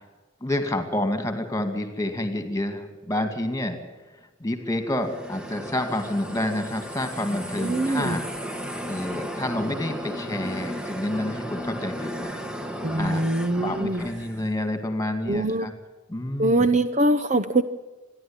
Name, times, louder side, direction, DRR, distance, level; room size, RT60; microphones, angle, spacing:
voice 1, 0.4-3.8 4.4-8.2 8.9-12.4 13.0-13.3 13.6-15.7 16.1-16.7, left 1 dB, 15° left, 7 dB, 2.3 m, -28 dB
sound 1, 4.8-14.5, equal, 5° right, 1.2 m, -34 dB
voice 2, 7.6-8.2 12.8-14.0 15.3-15.7 16.4-17.6, right 2 dB, 35° right, 11 dB, 0.7 m, -23 dB
27.5 x 11.0 x 8.9 m, 1.2 s
head